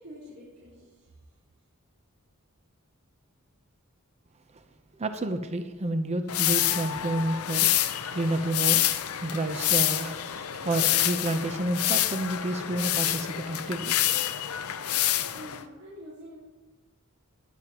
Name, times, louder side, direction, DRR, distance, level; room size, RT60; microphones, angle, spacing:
voice 1, 0.0-1.4 15.2-16.4, equal, 85° right, 4.6 m, -47 dB
voice 2, 5.0-7.9 8.1-8.8 9.2-14.0, right 1 dB, 30° right, 0.7 m, -30 dB
sound 1, 6.3-15.6, left 12 dB, 80° left, 0.7 m, -27 dB
19.5 x 9.3 x 2.9 m
head